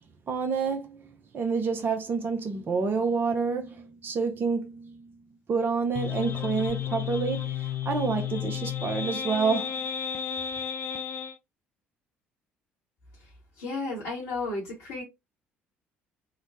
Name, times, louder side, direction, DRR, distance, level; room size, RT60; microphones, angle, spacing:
voice 1, 0.3-1.1 1.3-5.2 5.5-9.9, right 5 dB, 35° right, 0.6 m, -28 dB
sound 1, 6.0-11.4, left 9 dB, 40° left, 0.4 m, -32 dB
voice 2, 13.6-15.0, left 3 dB, 65° left, 0.9 m, -33 dB
3.0 x 2.1 x 2.6 m
figure-of-eight pair, 50°, 6 cm